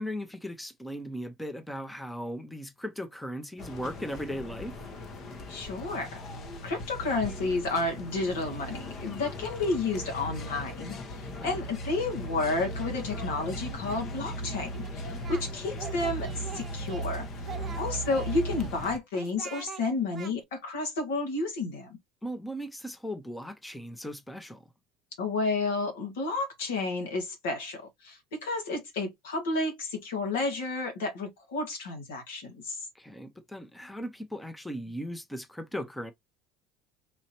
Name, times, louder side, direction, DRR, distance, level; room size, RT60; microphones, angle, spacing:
voice 1, 0.0-4.9 11.3-11.6 17.6-17.8 22.2-24.6 32.9-36.1, equal, 5° left, 0.8 m, -38 dB
sound 1, 3.6-19.0, equal, 45° left, 1.0 m, -38 dB
voice 2, 5.5-6.2 6.6-17.3 17.8-22.0 25.2-32.9, left 3 dB, 85° left, 1.9 m, -31 dB
Singing, 14.7-15.4 15.7-17.1 17.4-18.7 19.1-19.8 20.1-20.3, right 7 dB, 35° right, 0.8 m, -43 dB
4.3 x 2.7 x 2.9 m
supercardioid pair, 95°, 0 cm